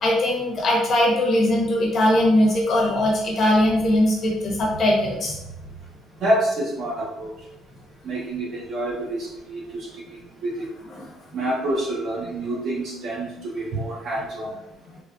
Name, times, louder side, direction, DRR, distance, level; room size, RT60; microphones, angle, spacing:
voice 1, 0.0-5.4 10.9-11.0, left 1 dB, 40° left, -2 dB, 0.6 m, -20 dB
voice 2, 6.2-7.3 8.0-9.9 10.4-10.5 11.3-14.5, right 1 dB, 50° right, -4 dB, 0.6 m, -27 dB
3.2 x 2.0 x 2.4 m, 0.87 s
cardioid pair, 160°, 0 cm